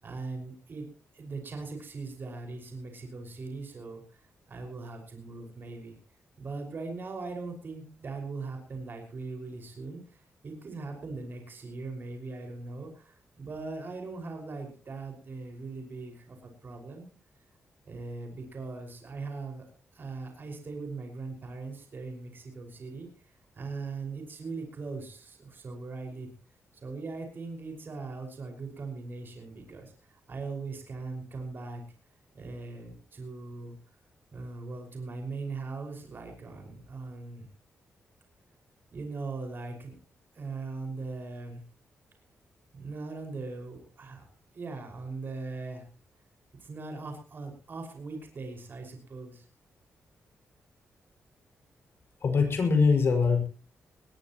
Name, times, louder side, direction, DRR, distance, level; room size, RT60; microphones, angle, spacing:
voice 1, 0.0-0.9 1.1-5.9 6.4-17.1 17.8-19.7 19.9-26.3 26.8-31.8 32.3-33.8 34.3-37.5 38.9-40.0 40.3-41.6 42.7-44.2 44.5-45.9 46.6-49.5, right 3 dB, 45° right, 3 dB, 5.7 m, -40 dB
voice 2, 52.2-53.5, left 5 dB, 55° left, 4 dB, 6.0 m, -23 dB
21.0 x 19.0 x 3.1 m, 0.37 s
cardioid pair, 100°, 5 cm